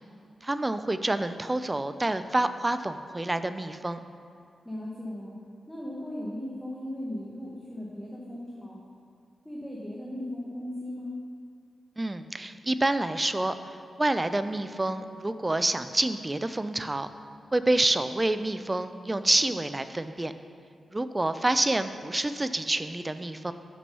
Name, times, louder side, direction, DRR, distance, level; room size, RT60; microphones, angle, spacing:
voice 1, 0.4-4.0 12.0-13.5 14.0-17.1 17.5-20.3 20.9-23.5, right 2 dB, 20° right, 11 dB, 0.3 m, -27 dB
voice 2, 4.6-5.3 5.7-8.8 9.4-11.1, left 1 dB, 5° left, -5 dB, 1.0 m, -37 dB
6.1 x 6.0 x 5.4 m, 2.4 s
wide cardioid pair, 105°, 0 cm